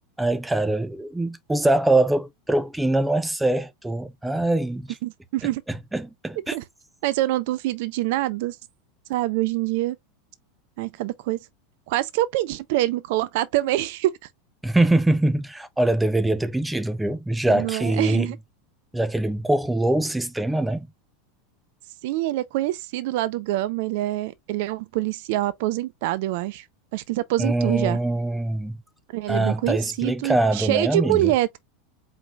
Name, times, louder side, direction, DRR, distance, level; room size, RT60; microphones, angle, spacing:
voice 1, 0.2-4.9 5.7-6.6 14.6-18.3 18.9-20.9 27.4-28.8 29.3-31.3, right 2 dB, 5° right, 0.5 m, -23 dB
voice 2, 5.0-5.6 6.5-6.6 7.0-8.6 9.1-10.0 10.8-11.4 11.9-14.1 17.5-18.4 22.0-26.6 26.9-28.0 29.1-31.6, right 15 dB, 55° right, 0.5 m, -25 dB
4.9 x 3.7 x 2.3 m
figure-of-eight pair, 85°, 0 cm